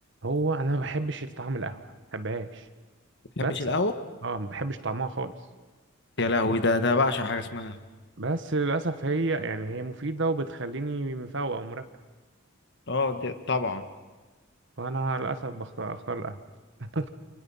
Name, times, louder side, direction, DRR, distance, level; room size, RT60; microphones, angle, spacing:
voice 1, 0.2-2.7 3.4-3.5 4.2-5.3 8.2-11.8 14.8-16.4 16.8-17.1, right 3 dB, 65° right, 10 dB, 1.5 m, -30 dB
voice 2, 3.4-3.9 6.2-7.8 12.9-13.9, left 3 dB, 60° left, 9 dB, 1.5 m, -26 dB
29.5 x 27.5 x 5.8 m, 1.3 s
head